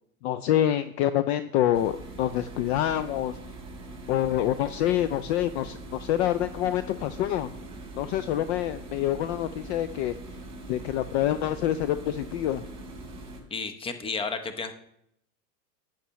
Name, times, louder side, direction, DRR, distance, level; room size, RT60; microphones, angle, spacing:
voice 1, 0.2-3.4 4.1-7.5 8.0-10.1 10.7-12.6, left 12 dB, 45° left, 12 dB, 0.4 m, -26 dB
sound 1, 1.7-13.4, right 2 dB, 10° right, 3.0 m, -42 dB
voice 2, 13.5-14.7, left 4 dB, 10° left, 9 dB, 0.7 m, -32 dB
11.0 x 8.7 x 3.1 m, 0.76 s
hypercardioid pair, 105°, 49 cm